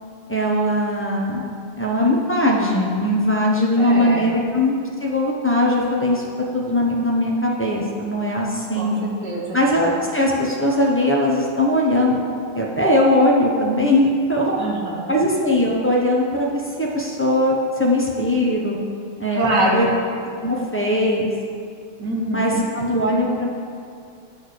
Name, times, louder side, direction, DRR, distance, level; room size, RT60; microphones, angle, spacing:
voice 1, 0.3-1.4 1.8-4.7 5.0-6.2 6.5-9.0 9.5-12.2 12.5-14.6 15.1-18.8 19.2-19.9 20.4-21.3 22.3-23.5, left 1 dB, 15° left, -3 dB, 0.4 m, -20 dB
voice 2, 3.8-4.4 8.8-9.6 14.6-15.1 19.3-19.9 22.0-22.6, right 2 dB, 60° right, -3 dB, 2.0 m, -24 dB
12.5 x 4.3 x 6.6 m, 2.3 s
omnidirectional pair, 2.2 m